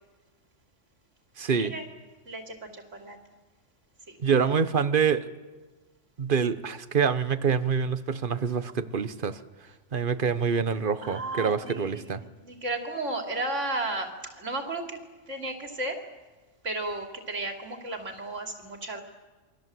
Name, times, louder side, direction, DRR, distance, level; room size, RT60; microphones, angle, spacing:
voice 1, 1.4-1.7 4.2-5.3 6.2-9.4 9.9-12.2, right 6 dB, 45° right, 13 dB, 1.2 m, -26 dB
voice 2, 2.2-3.2 4.1-4.2 11.0-12.1 12.4-15.0 15.3-16.0 16.6-19.0, right 2 dB, 85° right, 3 dB, 3.3 m, -34 dB
28.0 x 23.5 x 7.7 m, 1.3 s
omnidirectional pair, 1.2 m